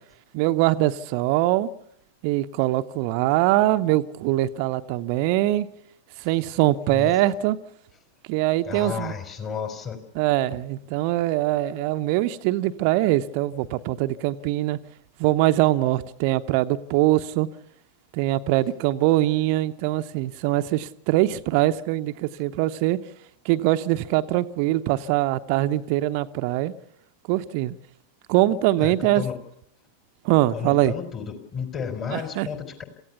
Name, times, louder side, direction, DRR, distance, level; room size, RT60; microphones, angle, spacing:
voice 1, 0.3-1.7 2.2-5.7 6.2-7.6 8.3-9.1 10.1-14.8 15.2-17.5 18.1-23.0 23.4-26.7 27.3-27.8 28.3-29.2 30.2-30.9 32.1-32.5, right 15 dB, 45° right, 11 dB, 0.8 m, -22 dB
voice 2, 8.6-10.0 28.8-29.3 30.5-32.8, left 6 dB, 30° left, 7 dB, 4.1 m, -32 dB
27.5 x 15.5 x 7.0 m, 0.74 s
figure-of-eight pair, 90°, 0 cm